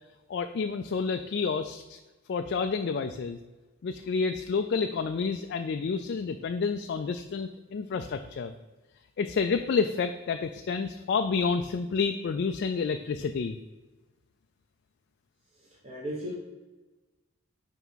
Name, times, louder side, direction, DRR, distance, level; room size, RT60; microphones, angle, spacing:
voice 1, 0.3-2.0 2.3-3.4 3.8-8.5 9.2-13.6, left 5 dB, 50° left, 7 dB, 0.3 m, -29 dB
voice 2, 15.6-16.3, equal, 30° right, -5 dB, 1.1 m, -37 dB
5.9 x 4.6 x 5.5 m, 1.2 s
head